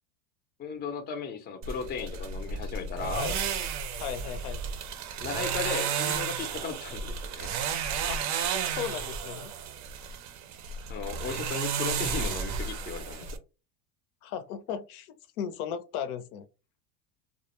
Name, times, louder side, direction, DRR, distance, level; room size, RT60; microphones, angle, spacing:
voice 1, 0.6-3.3 5.2-7.5 10.9-13.4, left 5 dB, 25° left, 0.5 m, -36 dB
sound 1, 1.6-13.4, right 6 dB, 40° right, 0.5 m, -33 dB
voice 2, 4.0-4.6 8.1-8.2 8.8-9.5 14.2-16.4, left 9 dB, 80° left, 0.6 m, -36 dB
2.3 x 2.0 x 2.9 m
supercardioid pair, 115°, 44 cm